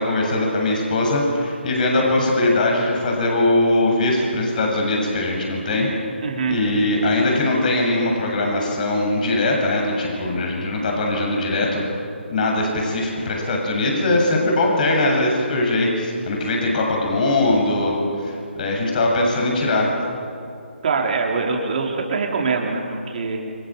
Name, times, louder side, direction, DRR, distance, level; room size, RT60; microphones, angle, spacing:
voice 1, 0.0-5.9 6.5-11.8 12.3-19.9, left 2 dB, 40° left, 0 dB, 7.8 m, -21 dB
voice 2, 6.2-6.6 20.8-23.4, right 4 dB, 45° right, 0 dB, 4.8 m, -23 dB
29.5 x 26.0 x 7.4 m, 2.5 s
figure-of-eight pair, 145°, 7 cm